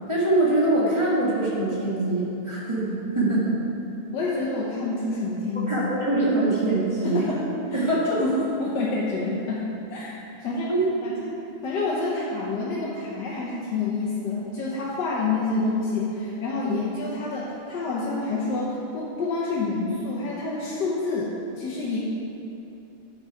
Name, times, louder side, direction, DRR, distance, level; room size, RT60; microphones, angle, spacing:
voice 1, 0.1-3.4 5.7-7.2 7.7-8.2 10.7-10.9, right 2 dB, 15° right, -6 dB, 1.5 m, -23 dB
voice 2, 4.1-5.9 7.0-7.4 7.7-7.9 8.2-10.7 11.0-22.0, left 3 dB, 65° left, -6 dB, 1.4 m, -28 dB
9.5 x 5.7 x 4.7 m, 2.8 s
omnidirectional pair, 2.2 m